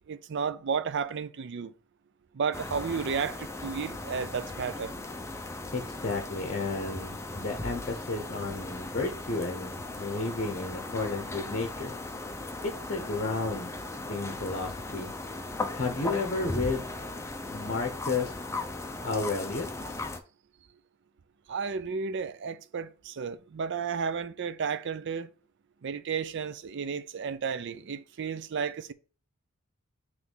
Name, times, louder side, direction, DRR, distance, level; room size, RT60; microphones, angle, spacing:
voice 1, 0.1-1.7 2.3-4.9 21.5-25.3 25.8-28.9, right 6 dB, 55° right, 0.4 m, -33 dB
sound 1, 2.5-20.2, left 2 dB, 15° left, 0.5 m, -37 dB
voice 2, 5.7-11.9 12.6-13.7 14.0-15.1 15.7-17.0 17.5-18.3 19.0-19.7, left 3 dB, 40° left, 0.9 m, -32 dB
5.9 x 3.2 x 5.5 m
head